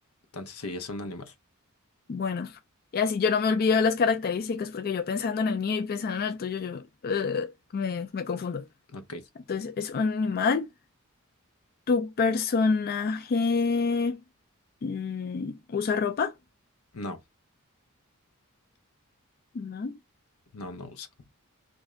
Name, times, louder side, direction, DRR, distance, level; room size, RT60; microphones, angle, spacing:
voice 1, 0.3-1.3 8.9-9.3 16.9-17.2 20.5-21.1, left 2 dB, 85° left, 0.8 m, -37 dB
voice 2, 2.1-2.5 2.9-8.6 9.5-10.7 11.9-14.2 14.8-16.3 19.6-20.0, left 5 dB, 45° left, 0.4 m, -27 dB
3.1 x 2.6 x 3.7 m
head